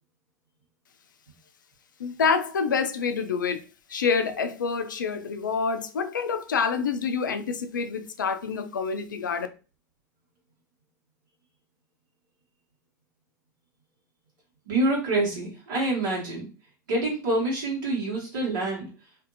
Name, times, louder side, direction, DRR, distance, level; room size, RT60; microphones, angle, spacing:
voice 1, 2.0-3.6 3.9-9.5, left 5 dB, 90° left, 0.4 m, -27 dB
voice 2, 14.7-16.4 16.9-18.9, right 2 dB, 75° right, 1.2 m, -26 dB
2.6 x 2.5 x 2.6 m
hypercardioid pair, 90°, 10 cm